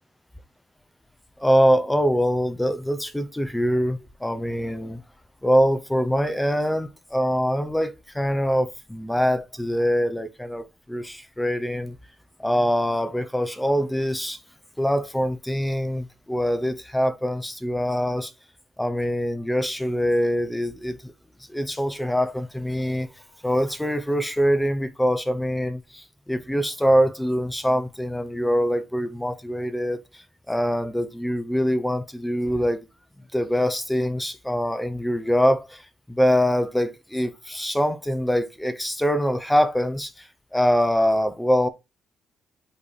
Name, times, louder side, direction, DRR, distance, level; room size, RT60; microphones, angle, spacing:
voice 1, 1.4-5.0 5.4-11.9 12.4-14.4 14.8-18.3 18.8-21.1 21.5-23.1 23.4-32.8 33.3-35.8 36.1-40.1 40.5-41.7, equal, 5° left, 0.9 m, -24 dB
8.9 x 3.3 x 4.2 m
cardioid pair, 90°, 0 cm